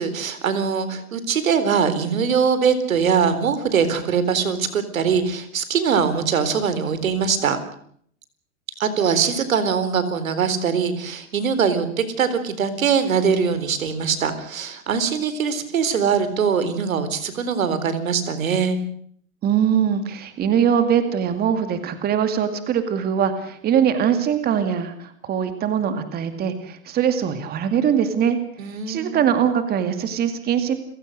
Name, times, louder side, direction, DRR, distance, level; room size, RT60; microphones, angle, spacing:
voice 1, 0.0-7.6 8.8-18.8 28.6-29.2, right 6 dB, 85° right, 12 dB, 4.1 m, -22 dB
voice 2, 19.4-28.4 28.9-30.8, right 8 dB, 25° right, 9 dB, 2.2 m, -22 dB
30.0 x 16.5 x 6.6 m, 0.63 s
hypercardioid pair, 140°, 40 cm